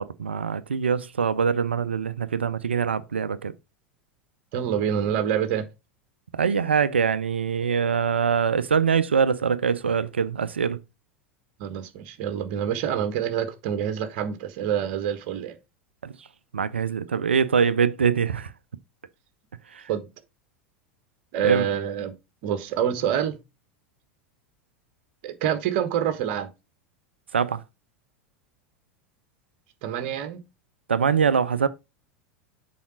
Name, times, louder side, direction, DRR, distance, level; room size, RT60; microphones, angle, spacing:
voice 1, 0.0-3.5 6.3-10.8 16.0-16.1 16.5-18.5 19.7-19.9 21.4-21.7 27.3-27.6 30.9-31.7, right 6 dB, 75° right, 0.5 m, -23 dB
voice 2, 4.5-5.7 11.6-15.6 19.9-20.1 21.3-22.1 22.4-23.4 25.2-26.5 29.8-30.4, right 9 dB, 50° right, 1.3 m, -26 dB
7.1 x 4.8 x 4.5 m
figure-of-eight pair, 85°, 6 cm